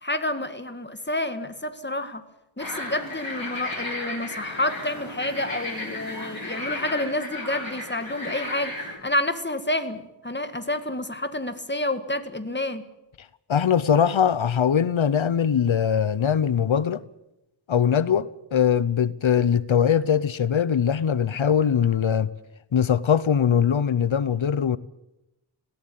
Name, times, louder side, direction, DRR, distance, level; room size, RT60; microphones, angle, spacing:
voice 1, 0.0-2.2 2.6-12.8, left 1 dB, 25° left, 1.9 m, -29 dB
sound 1, 2.6-9.0, left 2 dB, 50° left, 6.4 m, -34 dB
voice 2, 13.5-17.0 17.7-22.3 22.7-24.8, left 8 dB, 85° left, 0.8 m, -21 dB
19.0 x 17.5 x 8.7 m
wide cardioid pair, 65°, 46 cm